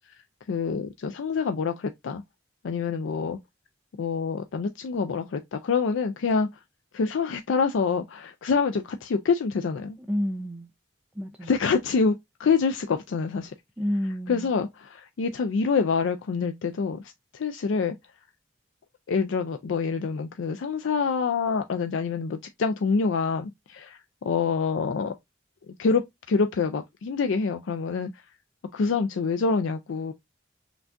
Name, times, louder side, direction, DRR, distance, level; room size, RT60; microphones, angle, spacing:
voice 1, 0.5-2.2 2.6-3.4 4.0-6.5 6.9-10.0 11.4-12.1 12.4-13.5 14.3-17.0 17.3-18.0 19.1-25.1 25.7-28.2 28.7-30.1, left 5 dB, 80° left, 0.4 m, -26 dB
voice 2, 10.1-10.7 11.2-11.5 13.8-14.5, equal, 5° right, 0.3 m, -29 dB
5.8 x 2.3 x 2.5 m
head